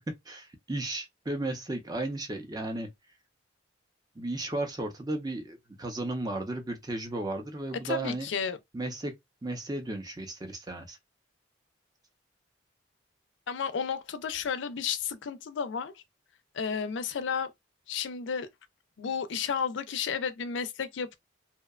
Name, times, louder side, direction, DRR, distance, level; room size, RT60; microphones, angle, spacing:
voice 1, 0.1-2.9 4.2-8.3 8.7-9.1 9.4-11.0, right 2 dB, 20° right, 0.6 m, -34 dB
voice 2, 7.8-8.6 13.5-16.0 16.5-17.5 17.9-18.5 19.0-21.1, left 6 dB, 70° left, 0.4 m, -32 dB
2.7 x 2.1 x 2.3 m
head